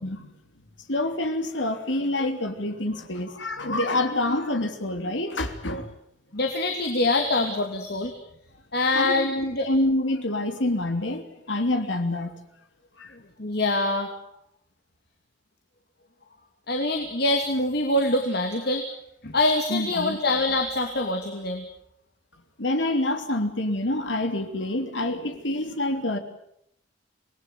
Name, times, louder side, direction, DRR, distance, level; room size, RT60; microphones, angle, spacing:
voice 1, 0.9-5.9 8.9-9.4 9.6-12.4 13.0-13.1 19.7-20.2 22.6-26.2, left 1 dB, 70° left, 6 dB, 3.2 m, -27 dB
voice 2, 6.3-8.1 8.7-9.7 13.4-14.1 16.7-18.8 19.2-21.6, left 2 dB, 55° left, 5 dB, 2.7 m, -24 dB
26.5 x 20.0 x 9.4 m, 0.73 s
head